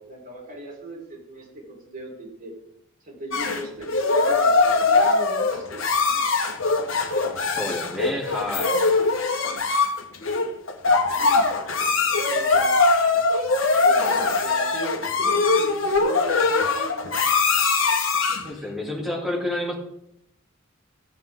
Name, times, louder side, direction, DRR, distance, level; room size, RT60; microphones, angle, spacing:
voice 1, 0.0-2.5 3.0-5.8 6.1-6.3 11.0-12.7 13.8-17.1, right 1 dB, 45° right, -3 dB, 4.8 m, -39 dB
sound 1, 3.3-18.5, left 3 dB, 70° left, 1.4 m, -21 dB
voice 2, 7.6-8.9 18.4-19.7, left 1 dB, ahead, -4 dB, 3.3 m, -29 dB
15.5 x 7.5 x 3.8 m, 0.77 s
head